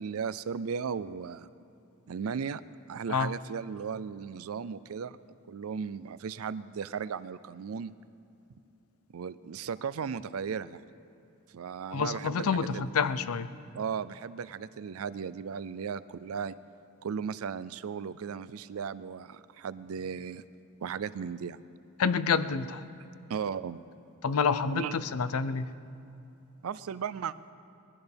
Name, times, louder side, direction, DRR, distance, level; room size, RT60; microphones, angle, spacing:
voice 1, 0.0-1.5 2.1-2.6 2.9-7.9 9.1-10.8 11.5-12.8 13.7-16.5 17.0-20.4 20.8-21.6 23.3-23.8 24.7-24.9 26.6-27.3, right 6 dB, 75° right, 16 dB, 0.4 m, -36 dB
voice 2, 11.9-13.5 22.0-22.8 24.2-25.7, left 5 dB, 85° left, 13 dB, 0.6 m, -28 dB
20.5 x 15.0 x 3.5 m, 2.8 s
head